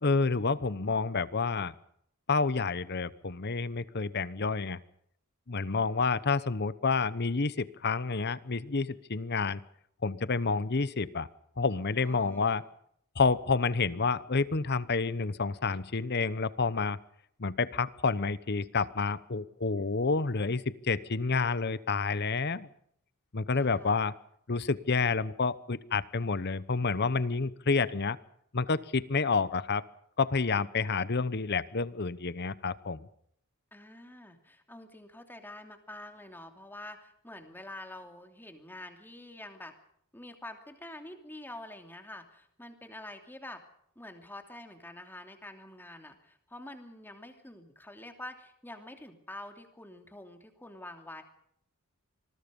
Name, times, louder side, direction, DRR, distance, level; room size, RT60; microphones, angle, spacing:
voice 1, 0.0-1.7 2.3-4.8 5.5-9.6 10.0-11.3 11.6-12.6 13.2-17.0 17.4-22.7 23.3-24.1 24.5-28.2 28.5-29.8 30.2-33.1, left 4 dB, 50° left, 16 dB, 0.9 m, -29 dB
voice 2, 12.0-12.6 23.5-24.0 33.7-39.7 40.1-43.6 44.0-51.2, left 1 dB, 10° left, 5 dB, 2.9 m, -47 dB
26.5 x 21.0 x 5.3 m, 0.69 s
head